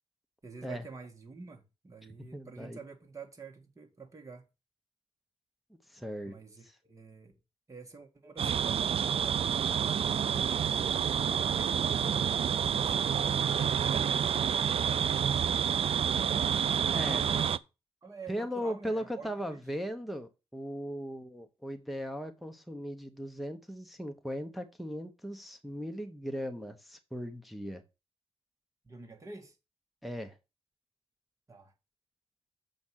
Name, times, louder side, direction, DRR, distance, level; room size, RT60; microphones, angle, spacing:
voice 1, 0.4-4.4 6.2-7.3 7.7-10.6 10.9-13.4 18.0-19.6 28.8-29.5 31.5-31.7, right 4 dB, 30° right, 1.8 m, -49 dB
voice 2, 2.3-2.8 5.9-6.4 6.6-6.7 16.9-17.3 18.3-27.8 30.0-30.4, equal, ahead, 1.1 m, -38 dB
sound 1, 8.4-17.6, right 8 dB, 60° right, 0.4 m, -28 dB
7.2 x 5.2 x 6.3 m
wide cardioid pair, 110°, 11 cm